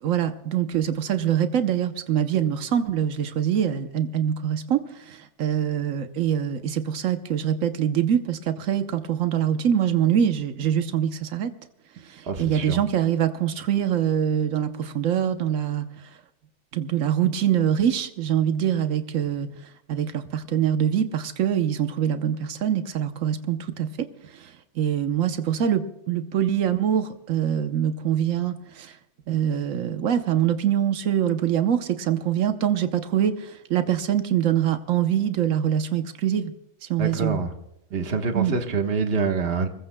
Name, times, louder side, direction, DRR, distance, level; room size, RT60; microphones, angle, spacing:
voice 1, 0.0-11.5 12.0-16.1 16.7-29.0 29.3-36.5 36.8-37.4 38.3-38.5, right 9 dB, 90° right, 8 dB, 1.2 m, -24 dB
voice 2, 12.3-12.8 37.0-37.5 37.9-39.7, right 4 dB, 50° right, 4 dB, 1.5 m, -26 dB
26.0 x 20.5 x 2.2 m, 0.85 s
omnidirectional pair, 1.3 m